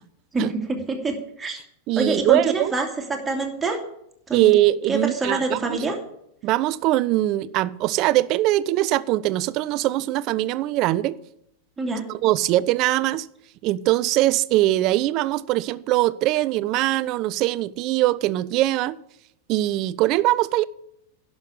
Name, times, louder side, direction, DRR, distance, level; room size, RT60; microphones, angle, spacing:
voice 1, 0.7-1.6 2.0-3.8 4.3-4.5 4.9-6.0 11.8-12.0, right 3 dB, 10° right, 2.4 m, -25 dB
voice 2, 1.9-2.7 4.3-5.9 6.4-11.2 12.1-13.3 13.6-19.0 19.5-20.7, right 16 dB, 40° right, 0.4 m, -22 dB
11.0 x 6.3 x 8.3 m
figure-of-eight pair, 90°, 0 cm